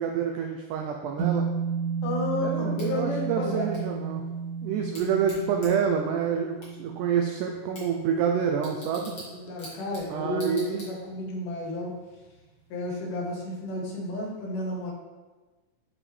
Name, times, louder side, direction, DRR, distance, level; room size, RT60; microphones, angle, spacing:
voice 1, 0.0-1.5 2.4-4.2 4.6-9.1 10.1-10.9, right 7 dB, 85° right, 2 dB, 1.8 m, -28 dB
sound 1, 1.2-9.6, right 6 dB, 45° right, 1.6 m, -33 dB
voice 2, 2.0-3.6 9.1-11.9 12.7-14.9, left 2 dB, 70° left, -1 dB, 2.5 m, -32 dB
Bicycle / Tick, 2.8-11.3, equal, 35° left, 2.1 m, -49 dB
7.4 x 5.0 x 3.2 m, 1.2 s
omnidirectional pair, 4.1 m